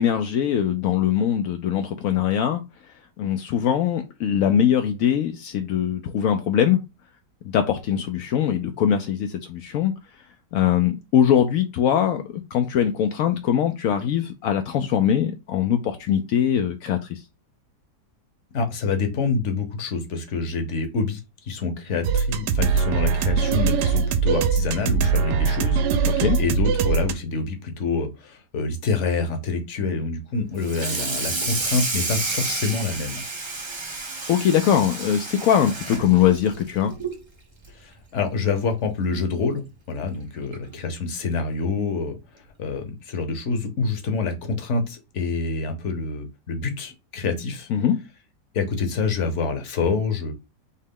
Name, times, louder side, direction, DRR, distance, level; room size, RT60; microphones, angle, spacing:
voice 1, 0.0-2.6 3.2-6.8 7.5-9.9 10.5-12.2 12.5-17.2 26.0-26.4 34.3-36.9 47.7-48.0, left 9 dB, 75° left, 0.8 m, -21 dB
voice 2, 18.5-21.2 21.5-33.2 37.8-42.2 42.6-47.7 48.5-50.3, left 4 dB, 50° left, 1.1 m, -27 dB
sound 1, 22.0-27.1, right 6 dB, 75° right, 1.1 m, -21 dB
Water tap faucet / Sink (filling or washing), 30.6-37.2 37.6-37.9 38.2-38.3 38.7-38.8 40.0-40.1 40.5-40.7, right 3 dB, 30° right, 0.5 m, -30 dB
4.4 x 3.0 x 3.6 m
omnidirectional pair, 1.9 m